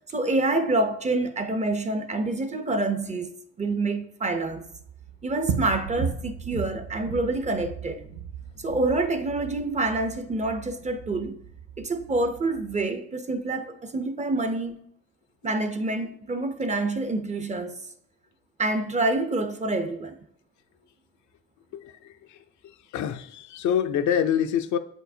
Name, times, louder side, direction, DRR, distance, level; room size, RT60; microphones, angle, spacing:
voice 1, 0.1-3.3 3.6-4.6 5.2-8.0 8.6-11.4 11.8-14.8 15.4-17.8 18.6-20.2, right 2 dB, 25° right, 0.6 m, -27 dB
sound 1, 4.5-12.8, right 7 dB, 75° right, 0.6 m, -36 dB
voice 2, 21.7-22.4 22.6-24.8, left 9 dB, 70° left, 0.5 m, -26 dB
7.7 x 4.5 x 2.7 m
cardioid pair, 90°, 30 cm